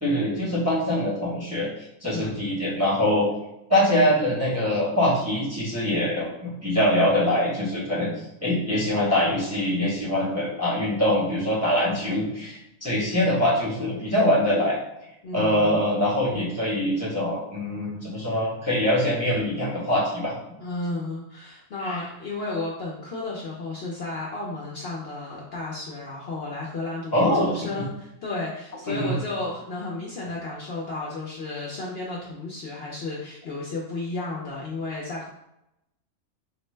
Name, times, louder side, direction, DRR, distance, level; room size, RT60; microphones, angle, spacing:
voice 1, 0.0-1.7 2.0-3.3 3.7-8.1 8.4-14.8 15.3-20.3 21.8-22.0 27.1-27.6 28.9-29.1, left 1 dB, 15° right, -7 dB, 0.7 m, -23 dB
voice 2, 7.9-8.3 15.2-15.8 20.6-35.3, left 2 dB, 60° left, -4 dB, 0.7 m, -33 dB
4.3 x 2.1 x 3.2 m, 0.85 s
omnidirectional pair, 1.4 m